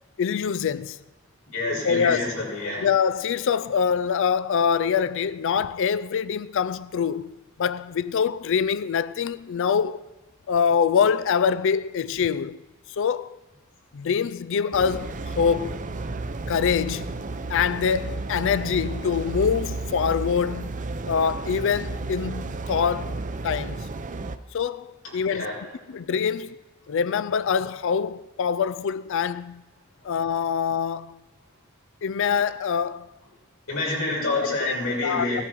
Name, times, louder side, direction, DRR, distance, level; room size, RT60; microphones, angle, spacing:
voice 1, 0.2-1.0 1.8-2.3 2.8-7.3 7.6-10.0 10.5-12.6 12.9-13.4 13.9-15.8 16.5-17.1 17.5-20.7 21.1-23.1 23.4-23.9 24.5-25.5 25.9-26.6 26.9-29.6 30.0-31.2 32.0-33.1 34.4-34.7 35.0-35.4, left 6 dB, 65° left, 0.4 m, -24 dB
voice 2, 1.5-2.9 25.2-25.6 33.7-35.4, left 2 dB, 85° left, 6.6 m, -27 dB
sound 1, 14.7-24.4, right 3 dB, 40° right, 0.6 m, -32 dB
18.5 x 14.0 x 4.6 m
head